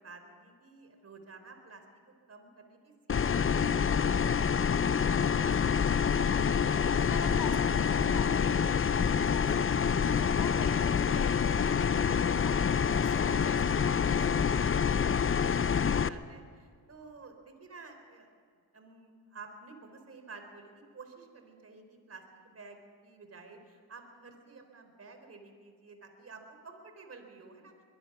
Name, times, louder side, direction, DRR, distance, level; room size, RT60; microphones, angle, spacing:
voice 1, 0.0-5.7 13.1-13.2 14.9-18.3 18.7-27.7, right 4 dB, 40° right, 6 dB, 3.9 m, -52 dB
sound 1, 3.1-16.1, left 7 dB, 35° left, 0.7 m, -27 dB
voice 2, 6.6-14.9, left 4 dB, 70° left, 6 dB, 4.0 m, -44 dB
23.0 x 22.5 x 6.0 m, 2.1 s
cardioid pair, 85°, 37 cm